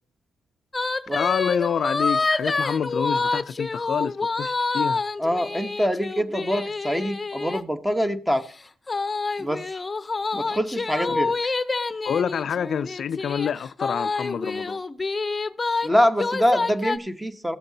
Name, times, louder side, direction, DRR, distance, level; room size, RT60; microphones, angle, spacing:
sound 1, 0.7-7.6 8.9-15.9 16.2-17.0, left 3 dB, 25° left, 0.8 m, -27 dB
voice 1, 1.1-5.0 12.0-14.8, left 8 dB, 60° left, 0.4 m, -27 dB
voice 2, 5.2-8.4 9.4-9.8 10.3-11.5 15.8-17.6, equal, 5° right, 1.0 m, -24 dB
16.0 x 7.9 x 2.8 m
cardioid pair, 90°, 0 cm